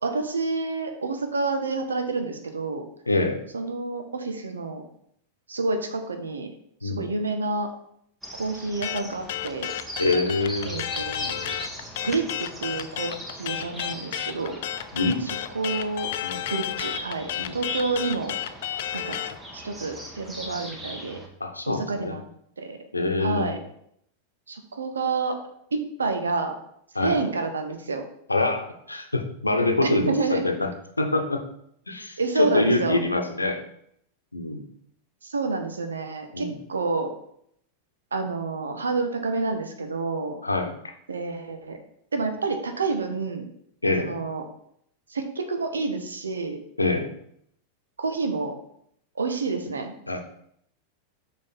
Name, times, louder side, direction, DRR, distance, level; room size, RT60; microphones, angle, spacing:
voice 1, 0.0-2.8 3.5-4.8 5.5-6.5 6.8-7.7 8.3-9.7 10.6-11.5 12.0-14.6 15.5-16.1 16.5-18.4 18.9-19.2 19.5-21.2 21.7-22.2 22.6-22.8 23.2-23.6 24.5-25.4 25.7-26.5 27.0-28.1 29.8-30.4 32.2-33.0 35.2-37.1 38.1-40.4 41.1-41.8 42.1-43.4 44.0-44.4 45.1-46.6 48.0-48.5 49.2-49.9, right 3 dB, 75° right, 6 dB, 1.0 m, -28 dB
voice 2, 3.1-3.4 6.8-7.0 10.0-10.8 14.9-15.4 16.2-16.4 17.4-17.6 21.4-22.1 22.9-23.5 26.9-27.2 28.3-30.7 31.0-31.4 31.9-33.6 34.3-34.7 36.3-36.6 40.4-40.7 43.8-44.1 46.8-47.1 50.1-50.2, left 2 dB, 80° left, 5 dB, 0.9 m, -25 dB
sound 1, 8.2-21.3, equal, 10° right, 1.3 m, -40 dB
sound 2, 8.8-19.4, left 12 dB, 55° left, 0.5 m, -31 dB
6.5 x 5.5 x 4.3 m, 0.71 s
figure-of-eight pair, 90°, 0 cm